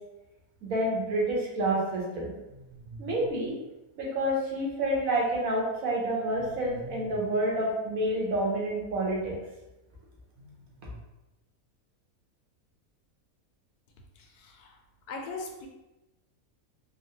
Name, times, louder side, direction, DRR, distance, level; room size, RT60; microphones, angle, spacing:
voice 1, 0.6-2.3 2.7-3.5 4.0-9.4 10.8-10.9, right 1 dB, 65° right, -3 dB, 1.2 m, -29 dB
voice 2, 14.2-14.7 15.1-15.7, left 3 dB, 85° left, 2 dB, 1.1 m, -40 dB
3.6 x 2.0 x 2.7 m, 0.99 s
omnidirectional pair, 1.6 m